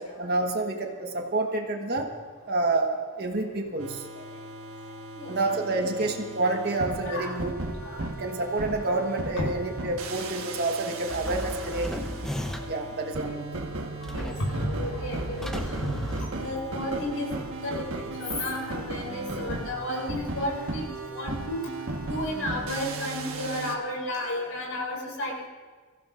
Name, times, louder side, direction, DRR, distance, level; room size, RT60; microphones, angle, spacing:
voice 1, 0.0-2.1 2.5-4.1 5.3-7.6 8.2-12.1 12.7-13.5, right 2 dB, 45° right, 3 dB, 1.3 m, -28 dB
sound 1, 3.8-23.7, right 2 dB, 75° right, 1.4 m, -36 dB
voice 2, 5.1-5.8 7.0-7.3 7.8-8.1 9.4-9.5 12.6-12.7 14.1-15.5 15.8-17.3 17.6-17.7 18.2-20.9 21.1-21.6 22.0-25.5, left 1 dB, 70° left, 0 dB, 4.7 m, -32 dB
sound 2, 11.1-12.9 14.0-16.9, equal, ahead, 0.7 m, -35 dB
23.5 x 15.5 x 2.5 m, 1.5 s
head